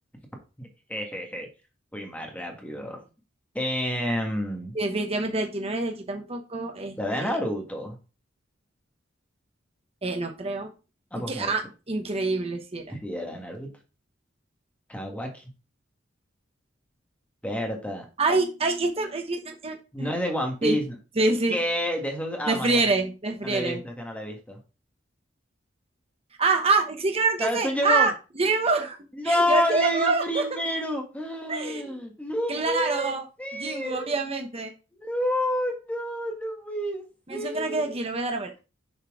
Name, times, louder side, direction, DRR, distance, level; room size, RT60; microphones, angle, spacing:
voice 1, 0.6-1.5 1.9-3.0 3.5-4.7 7.0-8.0 11.1-11.5 12.9-13.7 14.9-15.5 17.4-18.0 19.9-20.8 21.5-22.8 23.4-24.6 27.4-28.1 29.2-33.1 33.4-34.2 34.9-37.0 37.3-38.0, left 1 dB, 5° left, 2 dB, 1.6 m, -29 dB
voice 2, 4.7-7.3 10.0-10.7 11.3-11.6 11.9-12.8 18.2-20.1 20.6-20.8 21.2-21.6 22.5-23.8 26.4-28.1 28.4-29.0 29.2-30.4 31.5-31.9 32.5-33.2 33.5-34.7 37.3-38.6, right 3 dB, 30° right, 4 dB, 1.0 m, -26 dB
7.1 x 4.4 x 4.8 m, 0.32 s
head